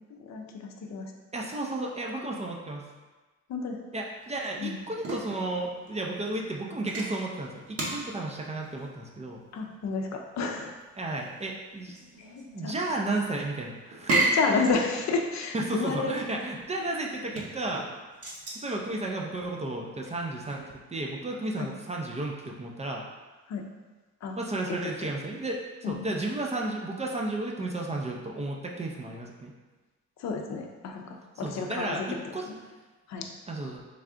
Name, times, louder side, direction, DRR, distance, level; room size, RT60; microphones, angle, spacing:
voice 1, 0.2-1.1 3.5-3.8 4.6-4.8 9.5-10.7 12.2-12.7 14.3-16.1 21.6-21.7 23.5-23.6 24.2-24.4 24.7-24.8 25.8-25.9 30.2-32.0 32.5-32.6 33.1-33.2, left 4 dB, 65° left, 3 dB, 0.6 m, -31 dB
voice 2, 1.3-2.9 3.9-9.4 11.0-12.0 12.5-14.1 15.5-17.9 18.5-20.6 20.9-23.0 24.4-29.5 31.4-32.5 33.5-33.8, right 2 dB, 20° right, 0 dB, 0.5 m, -33 dB
sound 1, 4.2-20.7, right 2 dB, 50° right, 1.0 m, -35 dB
3.4 x 2.3 x 3.7 m, 1.3 s
cardioid pair, 90°, 30 cm